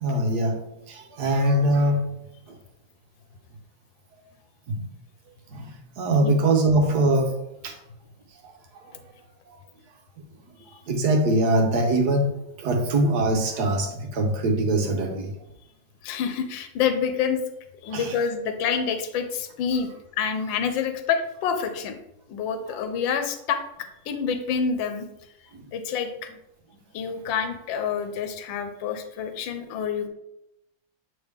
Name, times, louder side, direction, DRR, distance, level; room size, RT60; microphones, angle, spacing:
voice 1, 0.0-0.6 0.9-2.0 4.1-4.2 4.7-4.8 5.5-5.7 6.0-7.4 7.6-7.7 10.9-12.3 12.6-15.3 17.9-18.1 22.7-22.8, right 1 dB, 65° right, 4 dB, 1.4 m, -22 dB
voice 2, 16.0-17.4 17.8-19.9 20.2-22.0 22.3-23.6 24.1-25.1 25.7-26.1 26.9-30.1, left 6 dB, 85° left, 8 dB, 1.4 m, -27 dB
7.9 x 3.5 x 3.5 m, 0.86 s
omnidirectional pair, 2.0 m